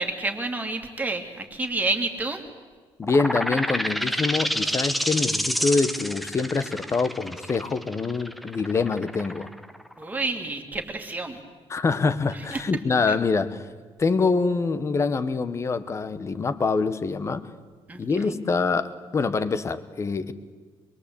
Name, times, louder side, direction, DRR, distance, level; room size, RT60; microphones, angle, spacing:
voice 1, 0.0-2.4 10.0-11.4 12.5-12.6 13.1-13.2 17.9-18.0, right 2 dB, 15° right, 4 dB, 2.5 m, -29 dB
voice 2, 3.0-9.5 11.7-13.6 14.0-17.4 18.0-20.3, left 4 dB, 30° left, 13 dB, 1.2 m, -25 dB
sound 1, 3.0-10.4, equal, ahead, 0.8 m, -29 dB
25.5 x 22.0 x 8.5 m, 1.5 s
cardioid pair, 155°, 10 cm